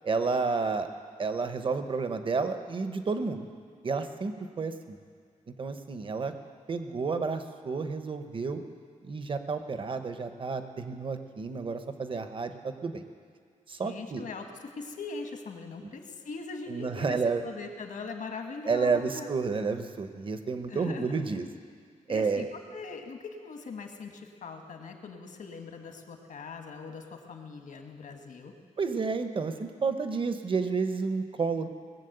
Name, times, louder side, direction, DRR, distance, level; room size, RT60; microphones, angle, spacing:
voice 1, 0.0-0.9 1.2-3.4 3.8-5.0 5.5-6.3 6.7-8.6 9.0-13.0 13.7-14.2 15.8-15.9 16.7-17.4 18.7-21.4 22.1-22.5 28.8-31.7, right 4 dB, 40° right, 8 dB, 0.8 m, -30 dB
voice 2, 13.8-17.2 17.4-19.3 20.7-21.4 22.1-28.5, left 4 dB, 70° left, 4 dB, 1.5 m, -41 dB
19.5 x 7.3 x 7.9 m, 2.1 s
wide cardioid pair, 175°, 14 cm